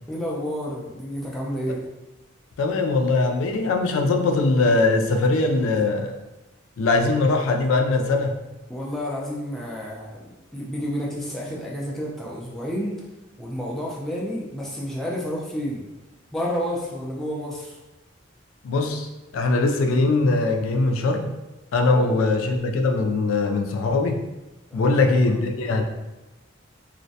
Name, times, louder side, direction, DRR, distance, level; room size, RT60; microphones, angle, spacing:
voice 1, 0.1-1.8 8.7-13.0 13.4-15.8 16.3-17.8 21.9-22.3 24.7-25.4, equal, ahead, -5 dB, 0.3 m, -30 dB
voice 2, 2.6-6.1 6.8-8.4 18.6-19.1 19.3-21.3 21.7-24.2 24.7-25.8, left 3 dB, 85° left, 4 dB, 0.3 m, -21 dB
2.4 x 2.1 x 2.6 m, 1.0 s
head